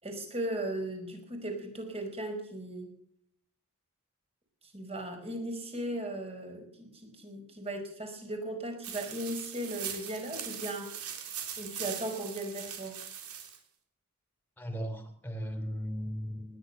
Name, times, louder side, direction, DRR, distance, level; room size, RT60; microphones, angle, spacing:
voice 1, 0.0-2.9 4.7-10.9 11.6-13.0, right 1 dB, 30° right, 4 dB, 5.1 m, -37 dB
sound 1, 8.8-13.6, right 8 dB, 85° right, 3.4 m, -41 dB
voice 2, 14.6-16.6, equal, 10° left, 8 dB, 3.1 m, -37 dB
19.5 x 11.0 x 6.7 m, 0.67 s
head